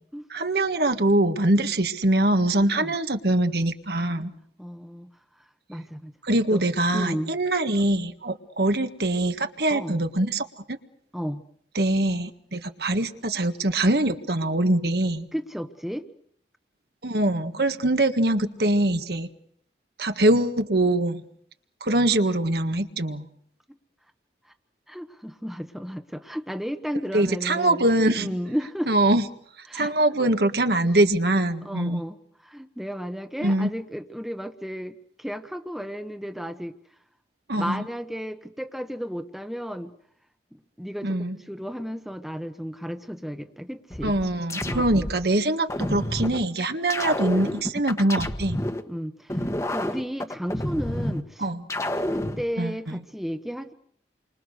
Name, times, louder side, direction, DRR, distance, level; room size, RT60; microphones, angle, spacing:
voice 1, 0.3-4.3 6.2-10.8 11.8-15.3 17.0-19.3 20.0-21.2 21.8-23.3 27.1-28.4 28.9-29.2 29.7-32.0 33.4-33.7 37.5-37.8 41.0-41.4 44.0-48.6 51.4-51.6 52.6-53.0, right 1 dB, 70° right, 7 dB, 1.7 m, -23 dB
voice 2, 4.6-5.1 5.7-6.1 6.5-6.6 6.9-7.4 9.7-10.0 11.1-11.4 15.3-16.1 23.7-23.8 24.9-27.8 28.1-28.9 29.7-29.9 30.2-30.3 31.6-36.7 37.6-39.9 40.5-44.1 44.7-45.1 48.9-51.5 52.1-53.7, equal, ahead, 8 dB, 1.2 m, -33 dB
sound 1, 43.9-45.2 45.7-46.4 46.9-48.8 49.3-51.2 51.7-52.4, left 1 dB, 15° left, 1.4 m, -29 dB
29.5 x 25.0 x 6.7 m, 0.65 s
head